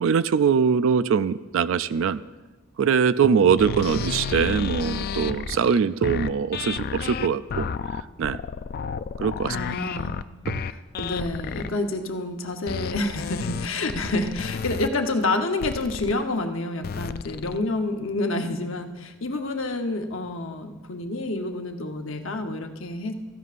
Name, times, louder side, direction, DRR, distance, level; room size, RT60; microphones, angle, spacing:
voice 1, 0.0-2.2 2.8-7.7 8.2-8.4 9.2-9.6 10.5-10.6, right 6 dB, 65° right, 15 dB, 0.3 m, -22 dB
sound 1, 3.6-11.7 12.7-14.9 15.6-16.1 16.8-17.6, left 6 dB, 45° left, 0.3 m, -31 dB
voice 2, 9.5-10.2 11.0-23.1, left 2 dB, 65° left, 4 dB, 1.0 m, -28 dB
16.0 x 14.0 x 2.5 m, 1.2 s
head